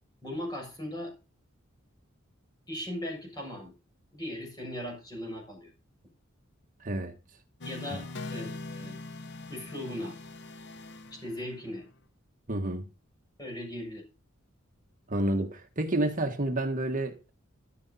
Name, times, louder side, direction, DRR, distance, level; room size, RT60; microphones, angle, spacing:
voice 1, 0.2-1.1 2.7-3.7 4.1-5.7 7.6-9.0 9.5-10.2 11.1-11.9 13.4-14.0, left 1 dB, 20° left, 6.9 m, -38 dB
voice 2, 6.8-7.1 12.5-12.9 15.1-17.3, right 1 dB, 40° right, 1.5 m, -29 dB
sound 1, 7.6-11.9, left 2 dB, 60° left, 0.9 m, -42 dB
13.5 x 11.0 x 4.1 m
head